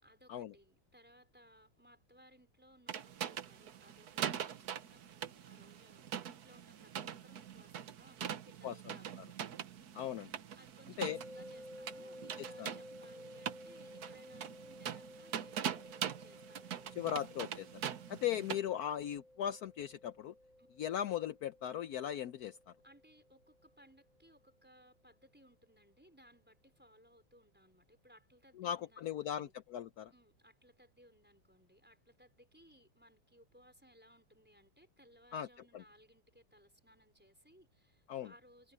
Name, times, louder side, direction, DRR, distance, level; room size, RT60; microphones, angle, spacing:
voice 1, 0.0-9.7 10.6-17.2 20.6-20.7 22.8-29.5 30.1-38.7, equal, 5° right, 4.6 m, -64 dB
sound 1, 2.9-18.6, right 9 dB, 55° right, 1.3 m, -43 dB
voice 2, 9.9-10.3 11.0-11.2 12.4-12.7 17.0-17.8 18.1-20.3 20.8-22.6 28.6-30.1 35.3-35.5 35.7-35.8 38.1-38.3, left 10 dB, 75° left, 0.8 m, -38 dB
sound 2, 11.1-24.2, left 1 dB, 55° left, 3.5 m, -55 dB
omnidirectional pair, 2.4 m